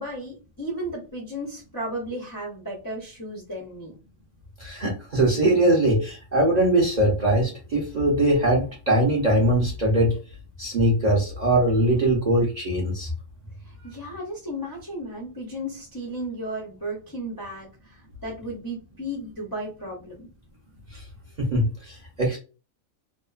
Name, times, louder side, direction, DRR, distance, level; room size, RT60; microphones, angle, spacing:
voice 1, 0.0-3.9 13.7-20.3, equal, 35° left, -4 dB, 0.3 m, -34 dB
voice 2, 4.6-10.2 10.6-13.1 21.4-22.4, right 1 dB, 50° right, -3 dB, 0.5 m, -21 dB
2.8 x 2.0 x 2.3 m, 0.34 s
omnidirectional pair, 1.4 m